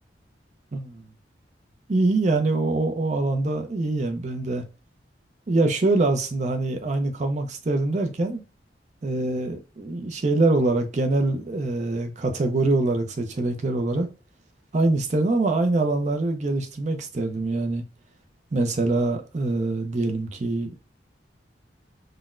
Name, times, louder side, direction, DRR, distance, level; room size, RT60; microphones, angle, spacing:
voice 1, 0.7-1.0 1.9-4.6 5.5-8.4 9.0-14.1 14.7-17.8 18.5-20.7, right 2 dB, 40° right, 0.4 m, -24 dB
3.9 x 2.1 x 2.4 m
head